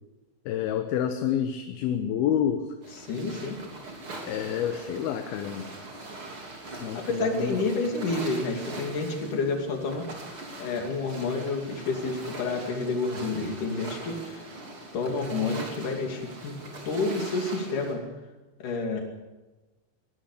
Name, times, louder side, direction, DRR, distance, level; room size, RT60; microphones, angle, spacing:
voice 1, 0.5-2.7 4.3-5.7 6.8-7.5, left 9 dB, 75° left, 7 dB, 2.8 m, -28 dB
sound 1, 2.8-17.9, right 2 dB, 35° right, 3.8 m, -41 dB
voice 2, 3.0-3.6 6.7-10.1 10.6-14.4 14.9-16.6 16.9-18.0 18.6-19.0, left 3 dB, 55° left, 3 dB, 4.1 m, -29 dB
22.0 x 17.5 x 6.8 m, 1.1 s
omnidirectional pair, 4.6 m